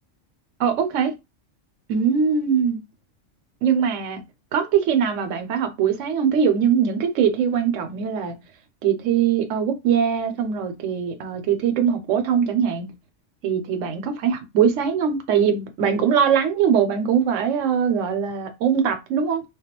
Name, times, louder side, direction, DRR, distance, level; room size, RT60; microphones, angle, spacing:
voice 1, 0.6-1.1 1.9-2.8 3.6-4.2 4.5-8.3 8.8-12.9 13.4-19.4, right 7 dB, 80° right, 0.9 m, -21 dB
2.2 x 2.2 x 2.8 m
omnidirectional pair, 1.3 m